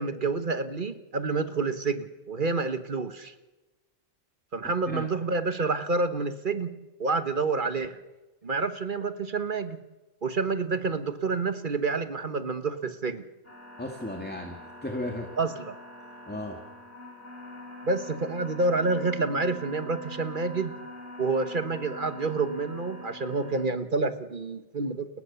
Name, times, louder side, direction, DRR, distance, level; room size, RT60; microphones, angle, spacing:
voice 1, 0.0-3.3 4.5-6.7 7.0-8.0 8.4-9.8 10.2-13.2 15.4-15.7 17.8-20.7 21.2-25.1, right 3 dB, 35° right, 10 dB, 1.4 m, -28 dB
sound 1, 13.4-23.6, left 1 dB, 40° left, 6.3 m, -44 dB
voice 2, 13.8-15.3 16.3-16.6, left 1 dB, 5° left, 3 dB, 2.3 m, -35 dB
30.0 x 23.0 x 7.1 m, 1.1 s
omnidirectional pair, 1.5 m